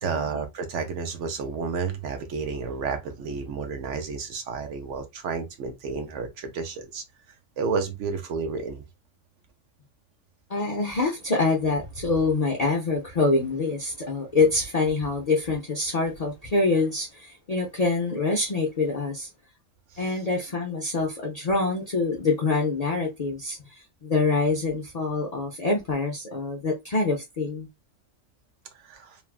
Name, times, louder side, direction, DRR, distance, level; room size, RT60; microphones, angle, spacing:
voice 1, 0.0-7.0 7.6-8.8 28.8-29.2, right 5 dB, 70° right, 1.0 m, -31 dB
voice 2, 10.5-19.3 20.0-27.7, left 3 dB, 55° left, 0.4 m, -25 dB
3.2 x 2.3 x 2.3 m
omnidirectional pair, 1.3 m